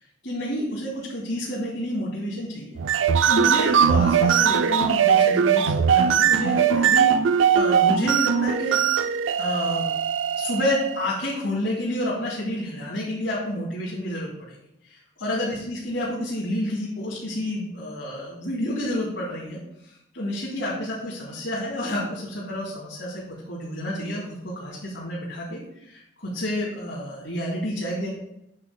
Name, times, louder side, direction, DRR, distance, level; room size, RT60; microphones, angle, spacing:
voice 1, 0.2-2.8 3.3-7.1 7.5-9.9 10.3-14.6 14.8-28.1, left 1 dB, 70° left, -6 dB, 2.7 m, -29 dB
sound 1, 2.8-11.0, right 7 dB, 80° right, 0.4 m, -20 dB
8.6 x 4.3 x 6.8 m, 0.81 s
head